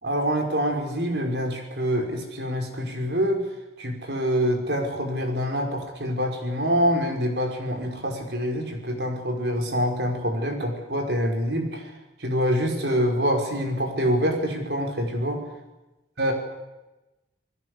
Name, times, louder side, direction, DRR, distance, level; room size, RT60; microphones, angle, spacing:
voice 1, 0.0-3.5 3.8-11.9 12.2-15.4 16.2-16.3, equal, 65° right, 3 dB, 5.7 m, -25 dB
28.0 x 21.0 x 8.3 m, 1.0 s
head